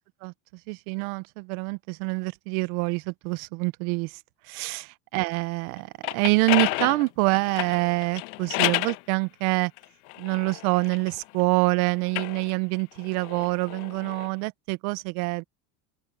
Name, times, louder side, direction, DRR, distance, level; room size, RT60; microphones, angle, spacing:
voice 1, 0.7-4.2 4.5-9.7 10.2-15.4, right 26 dB, 75° right, 1.1 m, -26 dB
sound 1, 5.8-9.0 9.8-11.5 12.0-14.3, left 24 dB, 75° left, 1.4 m, -31 dB
open air
supercardioid pair, 115°, 44 cm